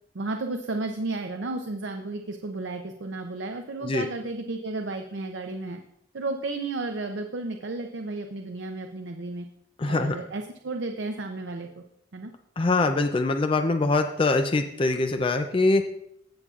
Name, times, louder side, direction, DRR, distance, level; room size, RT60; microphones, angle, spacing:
voice 1, 0.1-5.8 6.1-9.4 9.8-11.8 12.1-12.3, right 2 dB, 75° right, 5 dB, 0.6 m, -33 dB
voice 2, 9.8-10.2 12.6-15.9, left 3 dB, 30° left, 7 dB, 0.4 m, -23 dB
15.5 x 6.8 x 2.4 m, 0.74 s
head